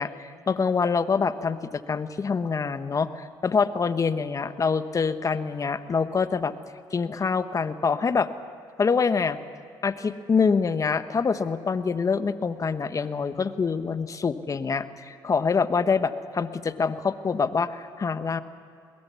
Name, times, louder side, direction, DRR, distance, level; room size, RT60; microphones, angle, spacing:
voice 1, 0.0-6.5 6.9-8.3 8.8-9.4 9.8-18.4, left 5 dB, 40° left, 11 dB, 1.3 m, -25 dB
23.0 x 21.5 x 7.1 m, 2.5 s
supercardioid pair, 70°, 9 cm